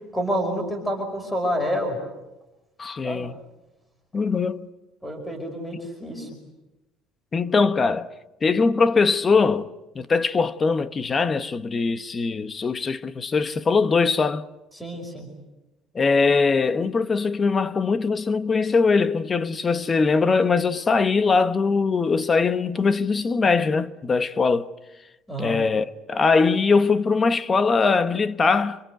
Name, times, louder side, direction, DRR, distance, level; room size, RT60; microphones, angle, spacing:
voice 1, 0.1-2.0 3.0-3.3 5.0-6.3 14.7-15.3 25.3-25.6, equal, 5° left, 5.3 m, -28 dB
voice 2, 2.8-3.4 4.1-4.7 7.3-8.1 8.4-14.5 15.9-24.7 25.4-28.8, left 4 dB, 25° left, 1.0 m, -21 dB
28.0 x 25.5 x 8.1 m
cardioid pair, 150°, 0 cm